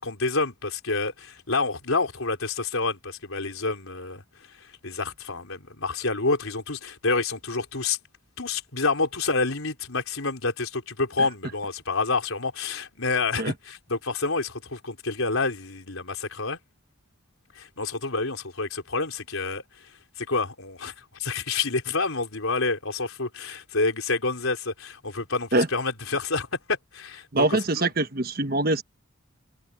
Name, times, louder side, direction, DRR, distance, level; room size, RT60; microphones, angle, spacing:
voice 1, 0.0-4.2 4.6-8.0 8.4-16.6 17.6-19.9 20.2-27.6, left 3 dB, 85° left, 4.2 m, -28 dB
voice 2, 27.3-28.8, right 2 dB, 45° right, 1.3 m, -23 dB
head